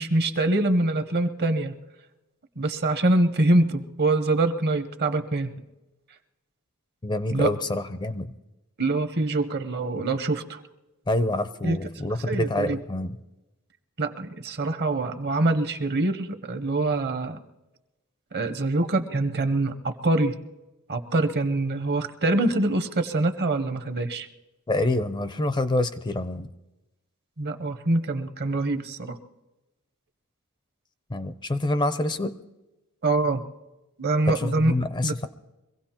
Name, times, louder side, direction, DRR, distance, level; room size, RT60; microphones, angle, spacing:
voice 1, 0.0-1.8 2.6-5.6 7.3-7.5 8.8-10.6 11.6-11.8 12.3-12.8 14.0-17.4 18.3-20.4 20.9-24.3 27.4-29.2 33.0-33.4 34.0-34.7 35.0-35.1, right 2 dB, 50° right, 10 dB, 0.9 m, -24 dB
voice 2, 7.0-8.3 11.1-13.2 24.7-26.5 31.1-32.4 34.3-35.3, left 1 dB, 20° left, 11 dB, 0.5 m, -26 dB
24.0 x 16.5 x 2.9 m, 1.0 s
head